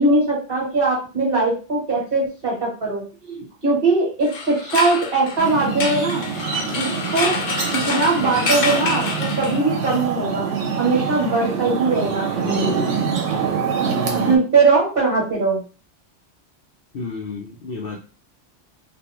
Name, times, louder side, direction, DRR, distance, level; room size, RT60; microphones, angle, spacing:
voice 1, 0.0-3.0 3.3-6.2 6.7-7.4 7.7-10.5 10.8-13.0 14.3-15.6, right 3 dB, 50° right, -3 dB, 1.4 m, -20 dB
sound 1, 4.2-9.9, left 4 dB, 80° left, 1.0 m, -27 dB
sound 2, 5.4-14.4, right 6 dB, 85° right, 1.0 m, -25 dB
voice 2, 13.8-14.4 16.9-18.0, left 3 dB, 60° left, -1 dB, 0.7 m, -31 dB
2.5 x 2.4 x 2.9 m, 0.35 s
omnidirectional pair, 1.2 m